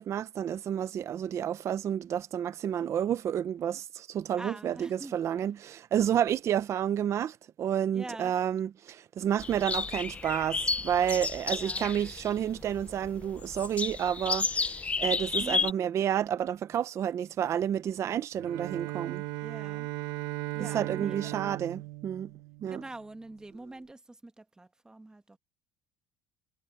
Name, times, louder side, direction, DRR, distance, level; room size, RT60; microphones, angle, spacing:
voice 1, 0.0-19.2 20.6-22.3 22.6-22.8, right 9 dB, 35° right, 0.6 m, -30 dB
voice 2, 4.4-5.1 7.9-8.3 11.5-11.9 15.4-15.8 19.4-19.9 20.5-21.6 22.7-25.4, right 2 dB, 10° right, 1.2 m, -45 dB
sound 1, 9.4-15.7, left 4 dB, 15° left, 0.6 m, -32 dB
Bowed string instrument, 18.3-22.9, right 19 dB, 80° right, 1.6 m, -37 dB
cardioid pair, 155°, 9 cm